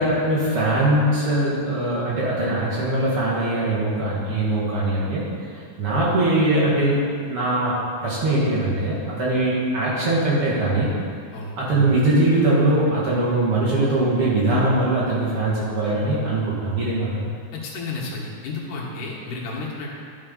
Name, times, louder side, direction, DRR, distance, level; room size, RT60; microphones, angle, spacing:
voice 1, 0.0-5.3 5.8-7.7 8.0-10.9 11.6-17.3, right 1 dB, 50° right, -7 dB, 2.4 m, -21 dB
voice 2, 17.5-19.9, left 3 dB, 80° left, -4 dB, 3.0 m, -32 dB
11.5 x 5.5 x 5.3 m, 2.2 s
omnidirectional pair, 3.7 m